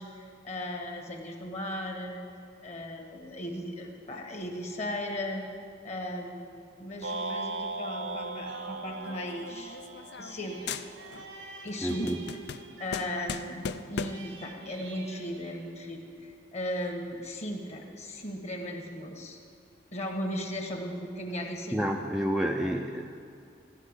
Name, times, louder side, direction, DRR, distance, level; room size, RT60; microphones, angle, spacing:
voice 1, 0.0-2.2 2.6-5.4 5.8-9.8 10.2-11.1 11.6-12.2 12.8-19.4 19.9-21.8, left 1 dB, 35° left, 2 dB, 1.4 m, -37 dB
sound 1, 7.0-11.3, right 2 dB, 70° right, 0.8 m, -38 dB
sound 2, 8.4-16.3 16.8-16.9, right 2 dB, 90° right, 1.4 m, -49 dB
sound 3, 9.0-10.4 10.7-11.3 11.7-14.4, left 6 dB, 60° left, 0.4 m, -39 dB
voice 2, 11.8-12.2 21.7-23.1, equal, ahead, 1 dB, 0.4 m, -29 dB
14.5 x 5.4 x 9.7 m, 2.4 s
head